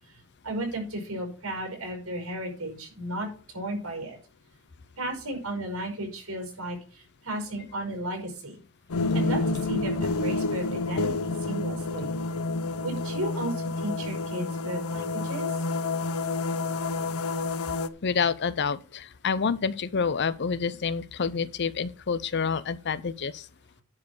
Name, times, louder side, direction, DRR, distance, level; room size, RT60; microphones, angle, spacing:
voice 1, 0.4-3.3 3.5-4.2 5.0-8.6 9.1-12.1 12.8-15.5, right 1 dB, 75° right, 5.6 m, -34 dB
sound 1, 8.9-17.9, left 3 dB, 85° left, 0.7 m, -29 dB
voice 2, 18.0-23.5, left 5 dB, 55° left, 0.7 m, -28 dB
10.5 x 4.7 x 7.7 m
head